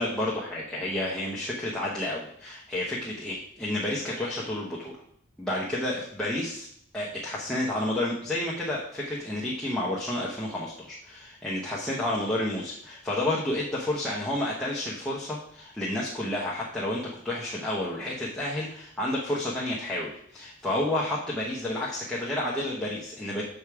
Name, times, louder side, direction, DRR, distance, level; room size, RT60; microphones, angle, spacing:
voice 1, 0.0-4.9 5.4-6.7 6.9-23.4, left 1 dB, 5° left, -6 dB, 1.0 m, -30 dB
7.3 x 5.1 x 4.8 m, 0.65 s
head